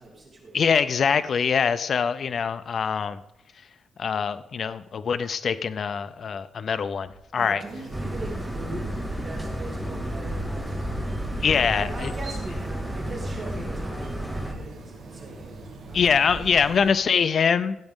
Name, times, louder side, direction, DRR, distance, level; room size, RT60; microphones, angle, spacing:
voice 1, 0.0-0.7 7.3-11.0 11.4-15.6 15.9-16.1, right 2 dB, 35° right, -2 dB, 2.9 m, -40 dB
voice 2, 0.5-3.2 4.0-7.6 11.4-12.1 15.9-17.8, left 6 dB, 45° left, 12 dB, 0.4 m, -23 dB
sound 1, 7.6-16.9, right 3 dB, 80° right, 3.7 m, -42 dB
sound 2, 7.9-14.5, equal, ahead, 0.9 m, -32 dB
16.0 x 8.1 x 3.6 m, 0.86 s
cardioid pair, 145°, 0 cm